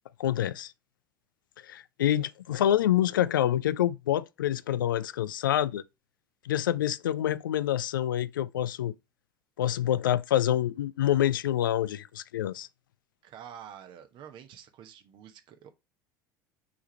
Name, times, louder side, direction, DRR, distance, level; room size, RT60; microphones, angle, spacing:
voice 1, 0.2-0.7 1.6-5.8 6.4-8.9 9.6-12.7, left 11 dB, 70° left, 0.4 m, -27 dB
voice 2, 13.2-15.7, right 9 dB, 45° right, 1.0 m, -48 dB
6.2 x 3.7 x 4.3 m
figure-of-eight pair, 70°, 11 cm